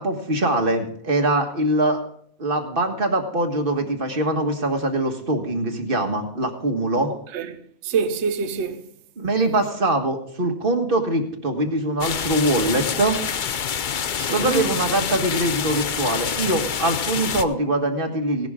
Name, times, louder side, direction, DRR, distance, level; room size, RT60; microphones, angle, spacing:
voice 1, 0.0-2.0 2.4-7.1 9.2-13.2 14.3-18.5, right 1 dB, 35° right, 1.8 m, -23 dB
voice 2, 7.3-8.9 14.2-14.7, right 6 dB, 50° right, 1.0 m, -26 dB
sound 1, 12.0-17.4, left 7 dB, 65° left, 0.4 m, -27 dB
17.0 x 11.5 x 3.7 m
omnidirectional pair, 1.6 m